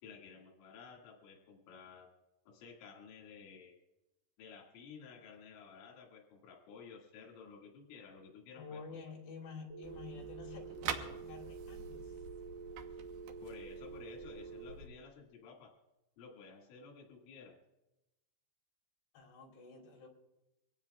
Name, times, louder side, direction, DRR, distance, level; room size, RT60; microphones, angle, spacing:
voice 1, 0.0-2.1 2.5-3.8 4.4-9.0 13.4-15.7 16.2-17.6, left 5 dB, 85° left, 0 dB, 4.5 m, -54 dB
voice 2, 8.5-12.1 19.1-20.1, left 5 dB, 65° left, 0 dB, 4.8 m, -50 dB
Telephone, 9.7-14.7, right 5 dB, 10° left, 2.3 m, -48 dB
sound 1, 9.8-14.9, right 7 dB, 70° right, 2.3 m, -46 dB
24.5 x 18.0 x 2.4 m, 0.97 s
omnidirectional pair, 5.4 m